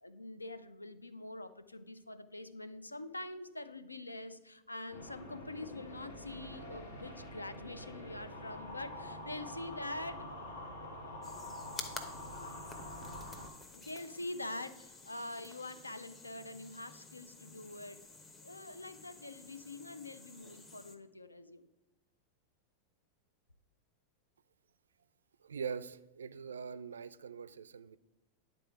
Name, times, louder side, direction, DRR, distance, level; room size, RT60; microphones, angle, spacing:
voice 1, 0.0-10.4 13.7-18.0 18.4-21.7, left 2 dB, 80° left, 12 dB, 0.5 m, -45 dB
sound 1, 4.9-13.5, left 1 dB, 65° left, 1.2 m, -46 dB
sound 2, 11.2-21.0, left 3 dB, 20° left, 1.0 m, -51 dB
voice 2, 25.4-28.0, right 6 dB, 70° right, 16 dB, 0.3 m, -42 dB
10.5 x 3.8 x 4.7 m, 1.1 s
figure-of-eight pair, 90°, 0 cm